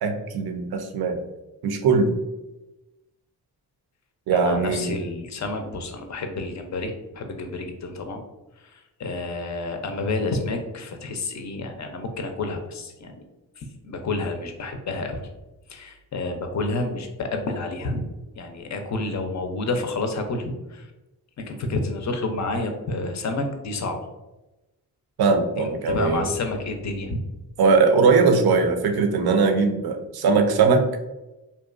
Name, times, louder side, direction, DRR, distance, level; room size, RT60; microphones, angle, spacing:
voice 1, 0.0-1.2 1.6-2.2 4.3-5.0 25.2-26.3 27.6-31.0, right 4 dB, 65° right, 6 dB, 0.5 m, -20 dB
voice 2, 4.3-8.2 8.6-13.2 13.6-15.2 15.7-18.1 18.4-20.9 21.4-24.0 25.6-27.2, left 2 dB, 45° left, 5 dB, 0.5 m, -29 dB
2.5 x 2.2 x 2.4 m, 1.0 s
supercardioid pair, 40°, 41 cm